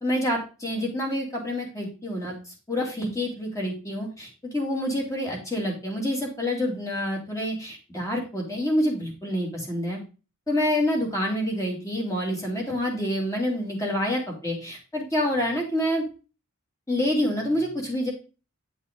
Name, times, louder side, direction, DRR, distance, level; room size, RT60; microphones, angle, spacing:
voice 1, 0.0-10.0 10.5-16.1 16.9-18.1, left 1 dB, 15° left, -1 dB, 2.5 m, -27 dB
9.4 x 5.6 x 3.7 m, 0.33 s
head